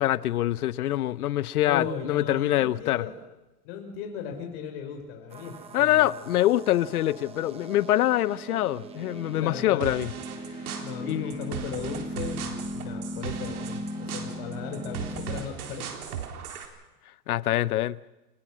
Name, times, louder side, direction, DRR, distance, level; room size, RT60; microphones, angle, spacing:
voice 1, 0.0-3.1 5.7-10.1 11.0-11.5 17.3-18.0, left 14 dB, 65° left, 0.9 m, -25 dB
voice 2, 1.6-3.1 3.6-6.1 9.4-9.9 10.8-15.9, left 7 dB, 40° left, 5.1 m, -37 dB
sound 1, 5.3-15.4, right 1 dB, 10° right, 1.4 m, -38 dB
sound 2, 9.8-16.7, right 8 dB, 65° right, 3.9 m, -38 dB
29.0 x 16.0 x 6.3 m
hypercardioid pair, 155°, 47 cm